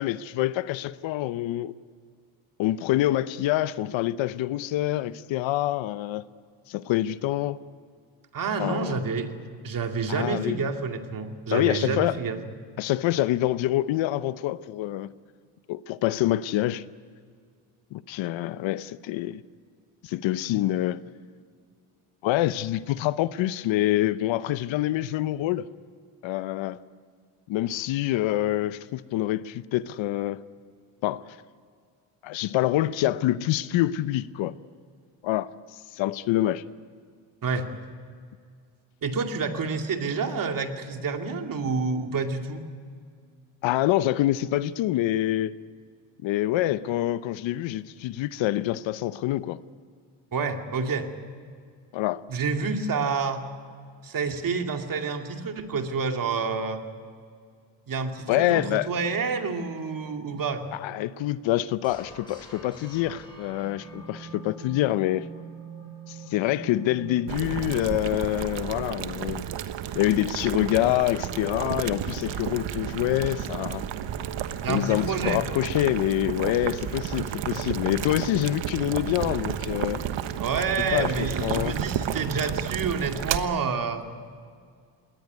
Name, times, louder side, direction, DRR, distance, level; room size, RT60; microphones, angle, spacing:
voice 1, 0.0-1.7 2.6-6.3 6.7-7.6 8.6-9.0 10.1-10.6 11.5-12.2 12.8-15.1 15.7-16.8 17.9-19.4 20.0-21.0 22.2-25.6 26.2-26.8 27.5-30.4 31.0-31.4 32.2-34.5 35.2-35.5 35.9-36.6 43.6-45.5 46.2-49.6 51.9-52.2 58.3-58.9 60.7-65.3 66.1-69.4 69.9-73.8 74.7-80.0 80.9-81.8, left 14 dB, 65° left, 0.8 m, -26 dB
voice 2, 8.3-9.3 9.6-12.4 37.4-37.7 39.0-42.6 50.3-51.1 52.3-53.4 54.0-56.8 57.9-60.6 74.6-75.6 80.4-84.1, right 4 dB, 40° right, 2.5 m, -28 dB
sound 1, 61.8-68.8, right 3 dB, 10° left, 7.8 m, -44 dB
Boiling, 67.3-83.4, right 10 dB, 60° right, 1.4 m, -32 dB
21.0 x 18.5 x 9.4 m
cardioid pair, 100°, 49 cm